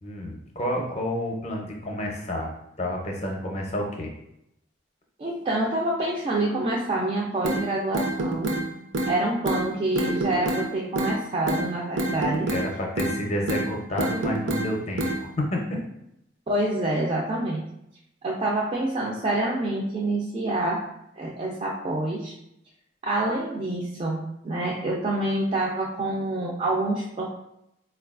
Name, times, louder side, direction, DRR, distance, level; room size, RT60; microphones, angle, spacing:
voice 1, 0.0-2.5 2.8-4.1 12.5-15.8, left 1 dB, 35° left, 1 dB, 0.5 m, -30 dB
voice 2, 5.2-8.6 9.1-12.5 16.5-17.6 18.2-20.8 21.2-22.3 23.0-27.2, right 1 dB, 30° right, -3 dB, 0.3 m, -27 dB
sound 1, 7.4-7.6 7.9-8.6 8.9-9.1 9.5-9.6 10.0-10.6 11.0-11.2 11.5-11.6 12.0-12.7 13.0-13.2 13.5-13.7 14.0-14.7 15.0-15.2, right 1 dB, 80° right, 0.5 m, -26 dB
3.9 x 2.2 x 2.4 m, 0.80 s
head